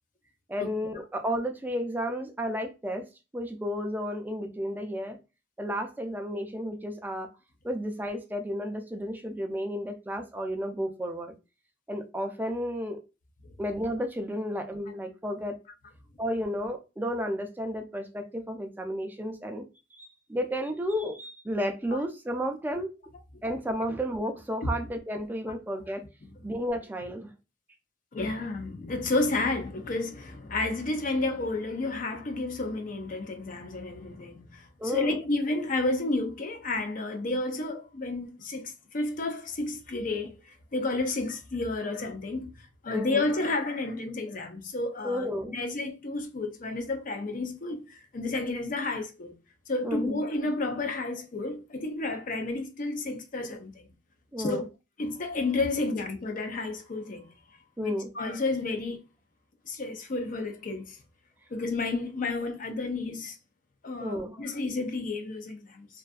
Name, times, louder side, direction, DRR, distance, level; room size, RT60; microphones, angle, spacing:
voice 1, 0.5-3.1 3.3-5.2 5.6-7.3 7.6-11.3 11.9-13.0 13.6-15.6 16.2-19.7 19.9-22.9 23.4-26.0 26.4-27.3 34.8-35.2 42.9-43.3 45.0-45.6 49.8-50.2 54.3-54.6 57.8-58.1 64.0-64.4, equal, 10° right, 0.4 m, -32 dB
voice 2, 28.1-40.4 40.7-42.5 42.8-49.3 49.7-53.9 54.4-54.7 55.0-57.3 57.8-59.0 59.7-61.0 61.5-63.4 63.8-65.9, left 2 dB, 45° left, 0.5 m, -31 dB
2.6 x 2.3 x 2.3 m
head